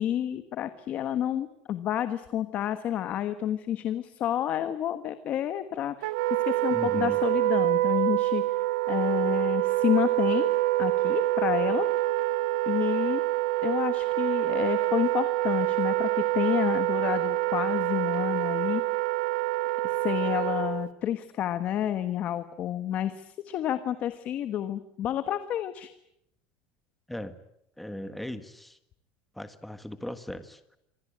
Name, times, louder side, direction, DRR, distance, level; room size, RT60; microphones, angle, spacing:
voice 1, 0.0-6.2 6.5-8.6 8.9-10.5 10.8-11.9 12.7-13.2 13.6-18.8 19.8-25.9, left 11 dB, 35° left, 10 dB, 1.4 m, -29 dB
Wind instrument woodwind instrument, 6.0-20.9, right 16 dB, 70° right, 1.4 m, -26 dB
voice 2, 6.7-7.2 27.1-27.4 27.8-28.8 29.3-30.8, left 1 dB, ahead, 10 dB, 1.5 m, -38 dB
26.5 x 25.5 x 8.7 m, 0.79 s
cardioid pair, 165°, 4 cm